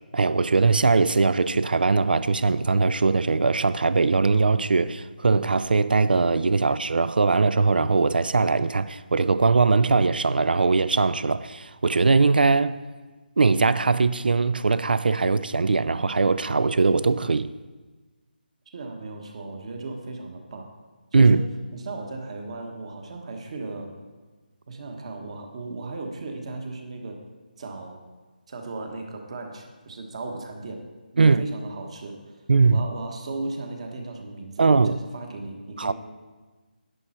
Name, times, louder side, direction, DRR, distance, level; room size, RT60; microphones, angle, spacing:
voice 1, 0.1-12.8 13.4-17.5 21.1-21.4 31.2-31.4 32.5-32.8 34.6-35.0 35.8-35.9, right 4 dB, 75° right, 0.4 m, -20 dB
voice 2, 18.7-20.7 21.2-23.9 24.7-27.2 27.6-28.0 28.5-30.8 31.1-32.4 32.7-35.9, right 3 dB, 40° right, 1.3 m, -36 dB
11.0 x 7.9 x 4.3 m
figure-of-eight pair, 165°, 5 cm